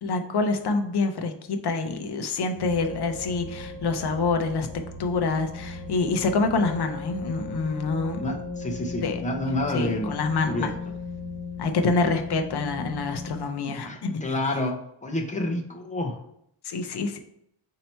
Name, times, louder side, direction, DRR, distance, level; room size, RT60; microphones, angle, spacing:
voice 1, 0.0-4.7 5.0-8.3 9.0-9.2 9.7-10.7 11.6-14.2 16.6-17.2, left 3 dB, 55° left, 6 dB, 0.6 m, -26 dB
sound 1, 2.6-13.4, left 3 dB, 60° right, 1.7 m, -37 dB
voice 2, 8.2-10.1 10.5-10.7 12.0-12.1 13.9-16.2, left 1 dB, 15° left, 1 dB, 0.6 m, -29 dB
4.3 x 2.8 x 4.4 m, 0.74 s
wide cardioid pair, 150°, 47 cm